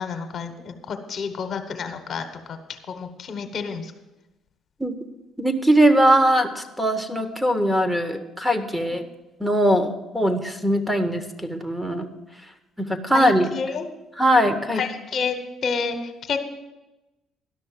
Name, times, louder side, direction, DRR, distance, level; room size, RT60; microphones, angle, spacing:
voice 1, 0.0-2.6 2.9-3.9 13.1-13.9 14.8-15.4 15.6-16.4, left 5 dB, 55° left, 7 dB, 1.2 m, -29 dB
voice 2, 5.4-9.0 9.4-12.1 12.8-13.5 14.2-14.8, right 1 dB, 5° right, 8 dB, 1.2 m, -21 dB
11.5 x 6.3 x 7.4 m, 1.0 s
hypercardioid pair, 55°, 0 cm